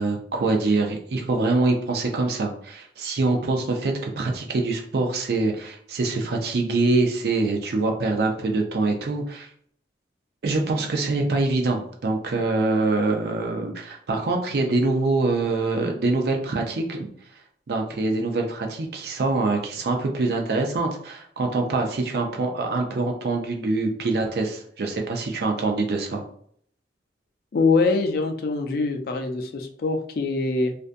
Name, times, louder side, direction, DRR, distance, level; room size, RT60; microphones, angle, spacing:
voice 1, 0.0-9.5 10.4-17.1 17.7-26.2, right 3 dB, 60° right, 2 dB, 0.4 m, -24 dB
voice 2, 27.5-30.7, left 3 dB, 55° left, 5 dB, 0.4 m, -23 dB
2.5 x 2.2 x 2.5 m, 0.62 s
head